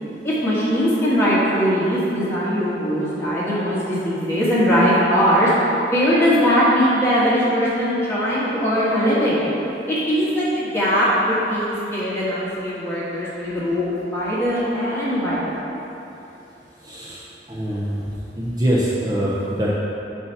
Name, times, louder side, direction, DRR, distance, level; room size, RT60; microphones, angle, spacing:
voice 1, 0.2-5.5 5.9-9.4 9.9-15.6, equal, 15° left, -9 dB, 1.4 m, -20 dB
voice 2, 16.8-17.2 17.5-18.0 18.3-19.7, equal, 20° right, -7 dB, 0.6 m, -23 dB
8.1 x 2.7 x 5.7 m, 2.9 s
head